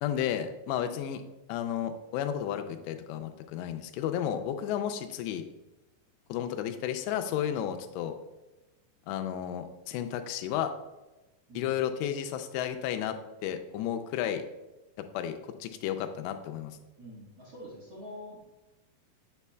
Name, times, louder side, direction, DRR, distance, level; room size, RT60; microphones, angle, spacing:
voice 1, 0.0-1.2 1.5-5.4 6.3-8.1 9.1-10.7 11.6-13.2 13.4-14.4 15.0-16.8, left 10 dB, 90° left, 7 dB, 2.8 m, -32 dB
voice 2, 17.0-18.4, equal, 50° right, -8 dB, 1.9 m, -45 dB
8.2 x 6.0 x 2.2 m, 1.1 s
omnidirectional pair, 4.9 m